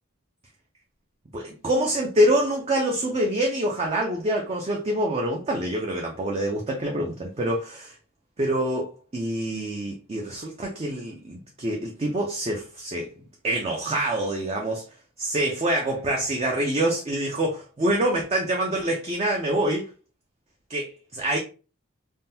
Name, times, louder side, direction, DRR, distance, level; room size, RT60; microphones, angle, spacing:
voice 1, 1.3-7.9 8.4-13.1 13.4-14.8 15.2-19.9 20.7-21.4, right 1 dB, 30° right, 0.4 m, -26 dB
3.5 x 2.2 x 2.7 m
head